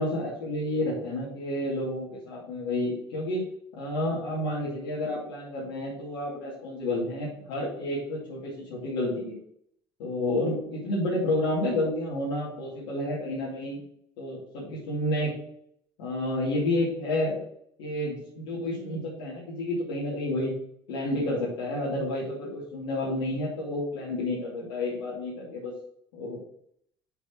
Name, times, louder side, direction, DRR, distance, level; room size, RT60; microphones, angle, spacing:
voice 1, 0.0-3.4 3.8-9.4 10.0-13.8 14.2-15.3 16.0-17.5 17.8-20.5 20.9-25.7 26.1-26.4, left 1 dB, 70° left, -8 dB, 2.6 m, -30 dB
6.8 x 4.4 x 6.1 m, 0.69 s
figure-of-eight pair, 55°, 12 cm